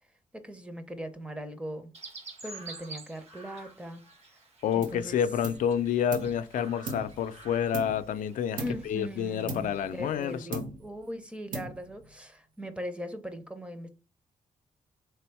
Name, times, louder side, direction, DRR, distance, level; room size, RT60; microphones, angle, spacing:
voice 1, 0.3-1.9 2.4-4.0 4.7-5.2 8.6-13.9, equal, 10° right, 0.6 m, -39 dB
Chirp tweet, 1.9-10.4, right 3 dB, 50° right, 1.3 m, -50 dB
voice 2, 4.6-10.6, left 8 dB, 80° left, 0.4 m, -29 dB
sound 1, 4.8-5.1 5.4-6.4 6.9-8.2 8.6-9.0 9.5-10.2 10.5-11.0 11.5-12.1, right 2 dB, 90° right, 0.9 m, -39 dB
3.4 x 3.4 x 4.5 m
cardioid pair, 125°, 13 cm